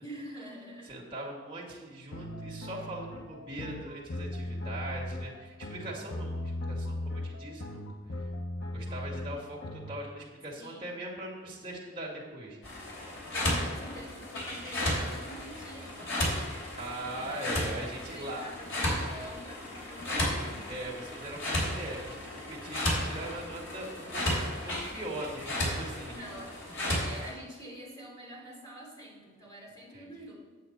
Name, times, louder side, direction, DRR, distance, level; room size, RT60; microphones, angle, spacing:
voice 1, 0.0-0.9 10.6-10.9 13.3-16.5 17.0-17.8 18.1-20.7 24.2-24.5 26.1-26.5 27.0-30.4, equal, 15° left, -5 dB, 3.0 m, -46 dB
voice 2, 0.9-7.8 8.7-12.6 16.8-18.4 20.7-26.1 29.9-30.1, right 1 dB, 25° right, -4 dB, 2.2 m, -41 dB
sound 1, 2.1-10.0, left 1 dB, 55° left, 0.8 m, -38 dB
sound 2, 12.6-27.3, left 1 dB, 75° left, 3.2 m, -34 dB
8.8 x 8.1 x 4.3 m, 1.4 s
head